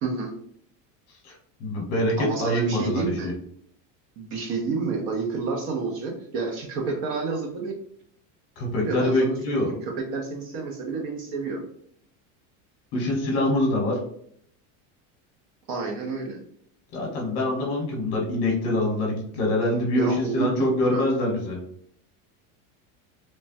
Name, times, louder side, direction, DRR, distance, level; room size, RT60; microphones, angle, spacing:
voice 1, 0.0-0.3 2.2-3.3 4.2-7.8 8.8-11.6 15.7-16.4 20.0-21.0, right 4 dB, 45° right, 2 dB, 0.5 m, -29 dB
voice 2, 1.2-3.3 8.6-9.7 12.9-14.0 16.9-21.6, left 1 dB, 35° left, -1 dB, 0.9 m, -25 dB
3.2 x 2.0 x 2.5 m, 0.67 s
cardioid pair, 165°, 41 cm